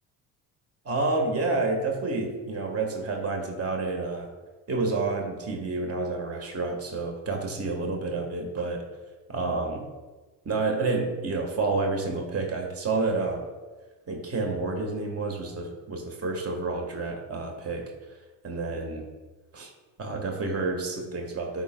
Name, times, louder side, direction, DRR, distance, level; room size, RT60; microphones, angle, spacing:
voice 1, 0.8-4.3 4.7-8.8 9.3-9.8 10.4-13.5 14.1-17.9 18.4-19.1 19.5-19.7 20.0-21.6, right 3 dB, 30° right, 2 dB, 1.4 m, -29 dB
11.5 x 4.8 x 2.2 m, 1.3 s
hypercardioid pair, 55°, 50 cm